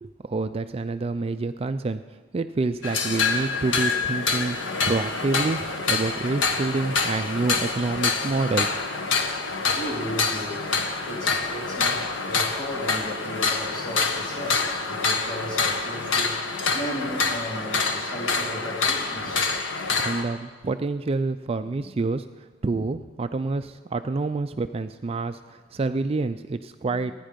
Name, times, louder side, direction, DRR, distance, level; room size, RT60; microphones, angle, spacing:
voice 1, 0.0-2.0 2.3-4.6 4.9-8.7 20.0-27.1, right 3 dB, 30° right, 10 dB, 0.4 m, -27 dB
sound 1, 2.8-20.2, left 4 dB, 80° left, 1.4 m, -26 dB
voice 2, 9.7-10.7 11.0-16.5 16.7-19.8 26.8-26.9, equal, 25° left, -3 dB, 4.0 m, -35 dB
27.0 x 10.0 x 5.2 m, 1.4 s
head